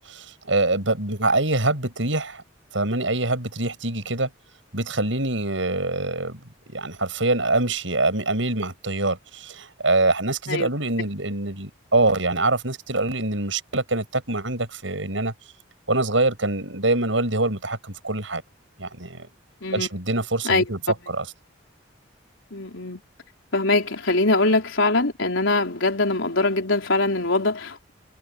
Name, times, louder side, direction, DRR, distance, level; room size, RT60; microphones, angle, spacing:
voice 1, 0.0-2.4 2.7-4.3 4.7-15.3 15.9-18.4 18.8-19.3 19.7-21.3, right 2 dB, 75° right, 6.6 m, -24 dB
voice 2, 22.5-23.0 23.5-27.9, left 2 dB, 80° left, 4.0 m, -22 dB
head